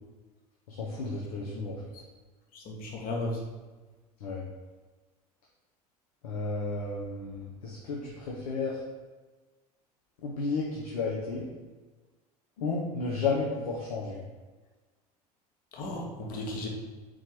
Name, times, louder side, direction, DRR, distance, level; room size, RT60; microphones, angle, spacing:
voice 1, 0.7-1.8 4.2-4.4 6.2-8.8 10.2-11.4 12.6-14.2, left 4 dB, 75° left, -4 dB, 1.1 m, -32 dB
voice 2, 2.5-3.4 15.7-16.7, left 2 dB, 45° left, -1 dB, 1.4 m, -35 dB
4.6 x 4.5 x 4.6 m, 1.3 s
hypercardioid pair, 75°, 20 cm